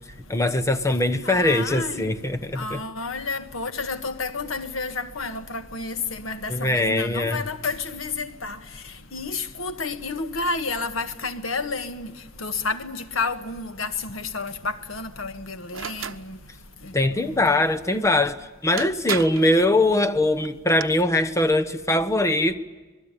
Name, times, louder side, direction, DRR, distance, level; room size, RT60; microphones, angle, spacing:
voice 1, 0.3-2.8 6.5-7.4 16.9-22.6, left 1 dB, 15° left, 1.0 m, -22 dB
voice 2, 1.2-2.1 2.5-8.6 9.1-12.1 12.4-16.4 16.8-17.6, left 3 dB, 85° left, 1.6 m, -30 dB
sound 1, 15.7-16.2 18.3-18.4 18.8-19.5 20.5-20.8, right 8 dB, 75° right, 0.9 m, -32 dB
26.5 x 20.0 x 9.1 m
head